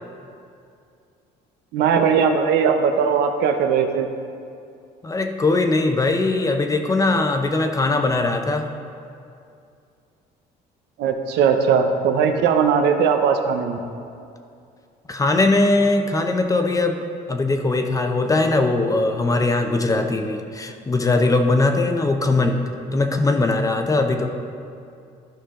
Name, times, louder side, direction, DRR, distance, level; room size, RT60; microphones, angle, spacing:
voice 1, 1.7-4.1 11.0-13.8, right 6 dB, 80° right, 6 dB, 0.8 m, -19 dB
voice 2, 5.0-8.7 15.1-17.0 17.3-22.6 22.9-24.3, left 2 dB, 20° left, 5 dB, 0.7 m, -20 dB
13.0 x 5.5 x 3.7 m, 2.5 s
cardioid pair, 110°, 17 cm